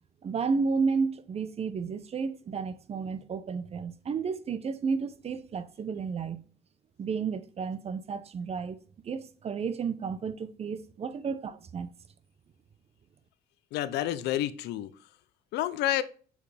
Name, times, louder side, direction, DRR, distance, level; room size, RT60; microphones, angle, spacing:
voice 1, 0.2-6.5 7.0-8.8 9.0-11.9, right 5 dB, 40° right, 0.7 m, -32 dB
voice 2, 13.7-14.9 15.5-16.0, left 13 dB, 80° left, 0.6 m, -29 dB
8.3 x 4.9 x 3.4 m
cardioid pair, 110°, 17 cm